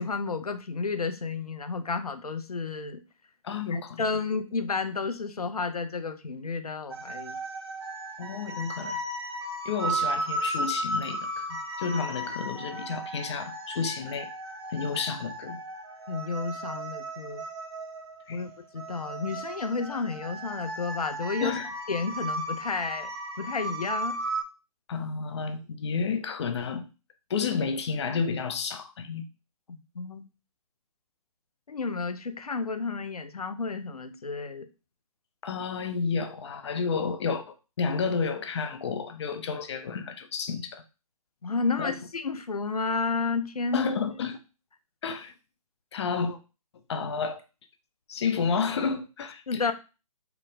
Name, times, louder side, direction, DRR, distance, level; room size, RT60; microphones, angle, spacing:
voice 1, 0.0-3.0 3.7-7.4 14.8-14.9 16.1-17.4 18.3-21.6 21.9-23.1 23.4-24.2 29.9-30.2 31.7-34.7 41.4-43.9 49.5-49.7, left 4 dB, 85° left, 0.7 m, -31 dB
voice 2, 3.4-4.0 8.2-9.0 9.6-14.3 14.7-15.6 18.3-18.4 21.4-21.7 24.9-26.9 27.3-29.2 35.4-40.8 41.8-41.9 43.7-44.4 45.0-45.3 45.9-46.4 46.9-47.4 48.1-49.6, left 5 dB, 50° left, 0.7 m, -31 dB
sound 1, 6.9-24.4, right 1 dB, 45° right, 0.8 m, -35 dB
4.5 x 2.3 x 3.9 m
figure-of-eight pair, 140°, 19 cm